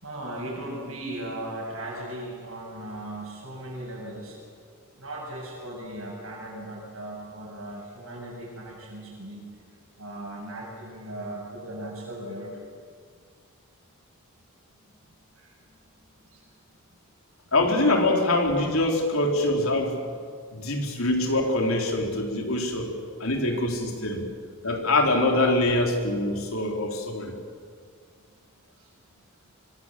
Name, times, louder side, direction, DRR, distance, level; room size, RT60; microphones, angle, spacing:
voice 1, 0.0-4.4 5.0-9.5 10.0-12.6 15.4-15.5 16.3-16.4 28.8-28.9, right 1 dB, 75° right, -3 dB, 7.6 m, -37 dB
voice 2, 17.5-20.0 20.5-22.9 23.2-24.2 24.6-27.3, left 2 dB, 80° left, 2 dB, 4.1 m, -24 dB
24.5 x 24.0 x 7.7 m, 2.1 s
head